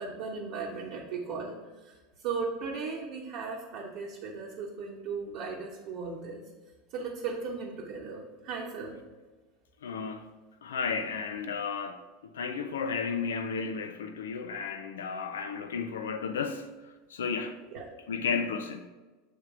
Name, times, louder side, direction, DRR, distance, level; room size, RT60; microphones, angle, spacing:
voice 1, 0.0-6.4 6.9-9.0 17.7-17.9, right 4 dB, 55° right, 0.9 m, -37 dB
voice 2, 9.8-10.3 10.6-12.0 12.3-16.7 17.1-17.6 18.1-18.9, left 5 dB, 75° left, 0.4 m, -33 dB
7.4 x 3.4 x 4.7 m
hypercardioid pair, 80°, 0 cm